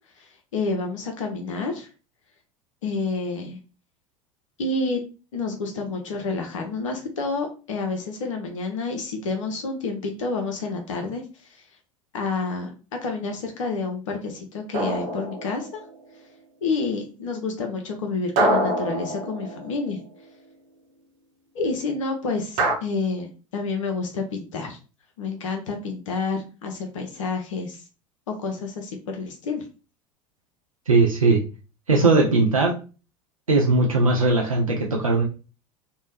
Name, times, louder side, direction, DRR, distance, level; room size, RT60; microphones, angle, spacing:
voice 1, 0.2-1.9 2.8-3.6 4.6-5.0 5.3-11.2 11.5-11.6 12.1-12.7 13.0-15.8 16.6-20.0 21.5-24.8 25.2-27.8 28.4-29.6, left 3 dB, 70° left, 3 dB, 0.5 m, -29 dB
sound 1, 14.7-15.9 18.4-20.0 22.6-22.7, right 1 dB, 50° right, 0.8 m, -25 dB
voice 2, 30.9-31.4 31.9-32.7 33.5-35.2, right 3 dB, 90° right, -1 dB, 0.4 m, -19 dB
2.6 x 2.0 x 2.9 m, 0.34 s
figure-of-eight pair, 70°, 17 cm